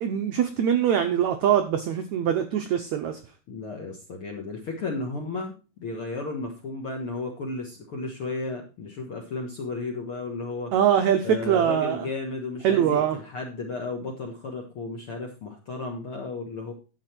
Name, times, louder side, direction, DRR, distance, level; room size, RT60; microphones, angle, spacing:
voice 1, 0.0-3.2 10.7-12.1 12.6-13.2, right 9 dB, 90° right, 7 dB, 1.6 m, -23 dB
voice 2, 3.5-10.7 11.2-16.7, left 3 dB, 60° left, 1 dB, 1.5 m, -34 dB
11.0 x 7.5 x 4.4 m, 0.33 s
omnidirectional pair, 4.5 m